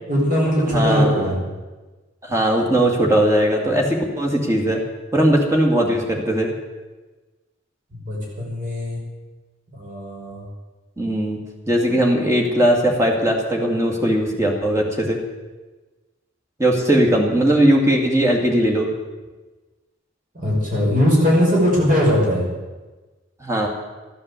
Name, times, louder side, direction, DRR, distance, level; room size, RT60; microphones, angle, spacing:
voice 1, 0.1-1.4 8.1-9.0 9.7-10.5 20.3-22.4, equal, 40° right, -4 dB, 5.5 m, -19 dB
voice 2, 0.7-1.3 2.2-4.8 5.1-6.5 11.0-11.4 11.7-15.2 16.6-18.9 23.4-23.7, right 1 dB, 15° right, 0 dB, 2.4 m, -19 dB
14.0 x 9.8 x 8.3 m, 1.2 s
head